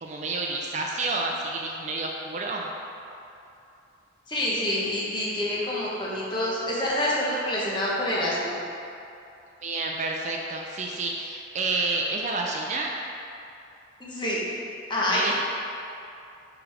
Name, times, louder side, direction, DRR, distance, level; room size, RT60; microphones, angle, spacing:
voice 1, 0.0-2.7 9.6-12.9 15.1-15.3, right 3 dB, 40° right, 0 dB, 0.5 m, -29 dB
voice 2, 4.3-8.6 14.0-14.4 14.9-15.3, left 1 dB, 25° left, -6 dB, 1.1 m, -27 dB
6.0 x 3.9 x 4.8 m, 2.7 s
head